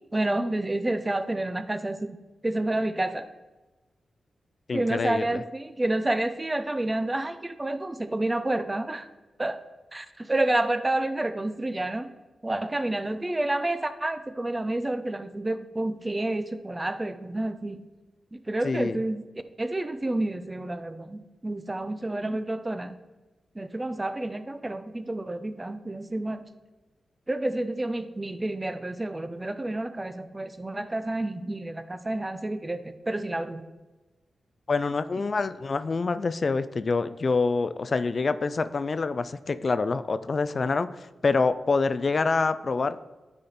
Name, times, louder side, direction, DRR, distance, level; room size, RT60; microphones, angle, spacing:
voice 1, 0.1-2.2 2.4-3.3 4.7-9.1 9.4-9.6 9.9-12.1 12.4-17.8 18.3-19.2 19.6-23.0 23.6-26.5 27.3-33.6 35.2-35.3, right 1 dB, 25° right, 10 dB, 0.6 m, -29 dB
voice 2, 4.7-5.4 18.6-19.0 34.7-43.0, left 4 dB, 55° left, 13 dB, 0.3 m, -26 dB
9.7 x 4.2 x 4.1 m, 1.2 s
supercardioid pair, 45°, 0 cm